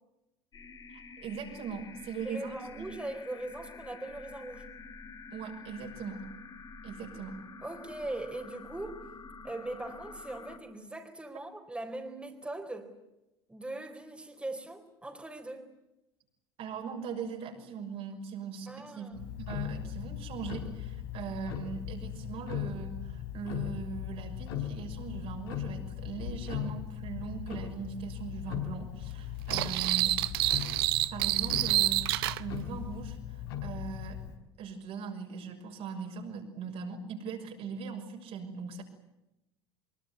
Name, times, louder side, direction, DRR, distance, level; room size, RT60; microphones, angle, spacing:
sound 1, 0.5-10.6, left 4 dB, 30° left, 3.5 m, -48 dB
voice 1, 0.9-3.0 5.3-6.3 6.8-7.5 16.6-30.2 31.1-34.2 34.6-38.8, right 6 dB, 50° right, 2 dB, 6.1 m, -40 dB
voice 2, 2.2-4.7 7.6-9.0 9.4-12.9 13.5-15.7 18.7-19.2, right 2 dB, 10° right, 3 dB, 4.2 m, -40 dB
Tick-tock, 19.1-34.4, left 10 dB, 70° left, 4.7 m, -38 dB
sound 2, 29.5-32.4, right 17 dB, 70° right, 0.9 m, -28 dB
24.0 x 22.5 x 9.6 m, 0.92 s
hypercardioid pair, 75°, 13 cm